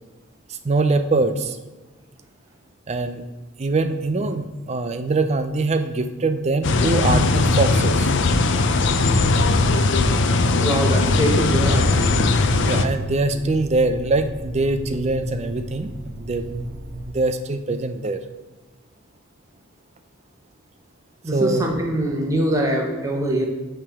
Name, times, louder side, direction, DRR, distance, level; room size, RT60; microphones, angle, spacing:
voice 1, 0.5-1.6 2.9-3.2 3.6-8.1 12.6-15.9 16.2-16.5 17.1-18.2 21.3-21.6, right 3 dB, 30° right, 9 dB, 0.4 m, -23 dB
sound 1, 6.6-12.8, left 3 dB, 60° left, 0.4 m, -19 dB
voice 2, 10.6-12.2 21.2-23.5, right 1 dB, 15° right, 0 dB, 1.0 m, -23 dB
sound 2, 11.3-17.1, right 1 dB, 65° right, 1.0 m, -35 dB
8.6 x 3.4 x 3.6 m, 1.2 s
head